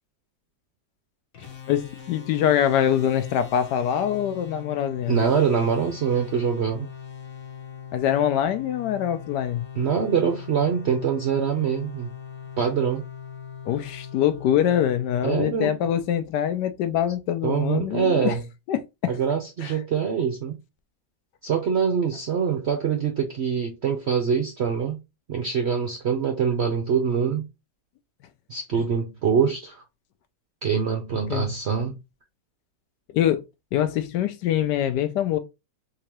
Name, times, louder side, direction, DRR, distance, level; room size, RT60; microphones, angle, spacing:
sound 1, 1.3-15.9, left 8 dB, 55° left, 1.2 m, -41 dB
voice 1, 1.7-5.2 7.9-9.6 13.7-18.4 18.7-19.1 19.6-19.7 31.3-31.5 33.1-33.4 33.7-35.4, left 10 dB, 75° left, 1.1 m, -24 dB
voice 2, 5.1-6.9 9.8-12.1 12.6-13.0 15.2-15.8 17.4-18.4 19.1-20.6 21.4-25.0 25.3-27.5 28.5-29.8 30.6-32.0, right 7 dB, 65° right, 0.6 m, -24 dB
3.6 x 2.9 x 2.9 m
omnidirectional pair, 1.9 m